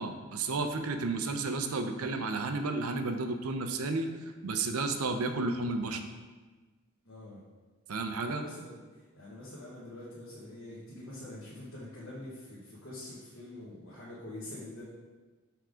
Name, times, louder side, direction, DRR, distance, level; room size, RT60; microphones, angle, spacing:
voice 1, 0.0-4.1 4.4-6.0 7.9-8.4, right 3 dB, 85° right, 7 dB, 0.6 m, -32 dB
voice 2, 7.0-7.4 8.2-14.8, left 1 dB, 65° left, -7 dB, 1.2 m, -45 dB
5.8 x 3.6 x 4.9 m, 1.3 s
head